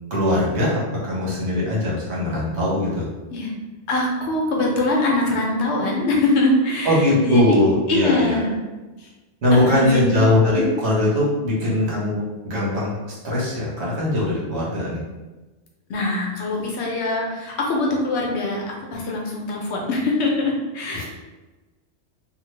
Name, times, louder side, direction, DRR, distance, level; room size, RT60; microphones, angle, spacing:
voice 1, 0.1-3.1 6.8-8.4 9.4-12.2 12.4-12.9 13.2-15.0 20.9-21.0, left 1 dB, 75° right, -5 dB, 1.3 m, -20 dB
voice 2, 3.9-7.6 7.9-8.6 9.0-9.1 9.5-10.2 15.9-21.0, left 2 dB, 80° left, -1 dB, 1.0 m, -23 dB
2.7 x 2.4 x 3.1 m, 1.2 s
omnidirectional pair, 1.1 m